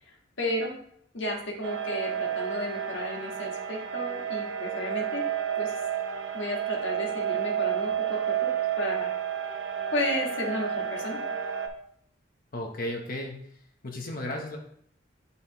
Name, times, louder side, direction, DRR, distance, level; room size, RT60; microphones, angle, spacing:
voice 1, 0.4-0.7 1.1-5.3 5.6-5.7 6.3-8.5 8.8-9.1 9.9-11.2, left 1 dB, 75° left, -1 dB, 1.5 m, -33 dB
sound 1, 1.6-11.7, right 9 dB, 70° right, 0.6 m, -31 dB
voice 2, 12.5-13.6 13.8-14.6, left 1 dB, 50° left, 2 dB, 0.8 m, -34 dB
9.2 x 4.1 x 2.8 m, 0.67 s
head